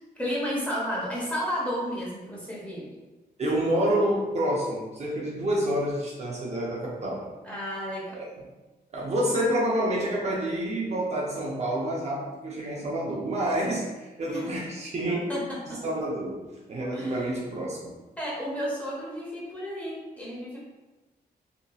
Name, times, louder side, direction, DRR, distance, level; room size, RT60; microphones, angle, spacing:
voice 1, 0.2-3.0 7.4-8.2 14.3-14.5 15.3-15.8 16.9-17.2 18.2-20.6, equal, 10° left, -6 dB, 0.7 m, -32 dB
voice 2, 3.4-7.3 8.1-8.4 8.9-15.4 15.7-17.9, right 1 dB, 40° right, -4 dB, 0.5 m, -28 dB
2.9 x 2.6 x 2.3 m, 1.2 s
wide cardioid pair, 160°, 16 cm